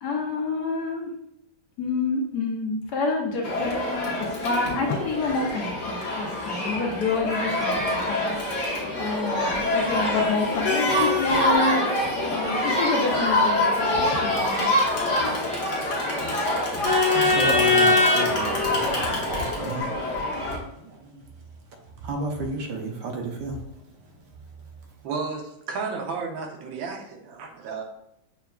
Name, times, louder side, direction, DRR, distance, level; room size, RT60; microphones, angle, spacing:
voice 1, 0.0-1.1 1.8-11.8 12.2-14.7 15.2-15.3, left 3 dB, 70° left, 0 dB, 1.1 m, -28 dB
Crowd, 3.4-20.6, left 2 dB, 50° left, 1.1 m, -24 dB
voice 2, 16.7-19.9 20.8-21.3 22.0-23.6 24.3-24.4, right 3 dB, 70° right, 2 dB, 1.2 m, -33 dB
voice 3, 25.0-27.8, right 4 dB, 90° right, 2 dB, 1.5 m, -32 dB
6.6 x 2.3 x 2.3 m, 0.79 s
omnidirectional pair, 2.0 m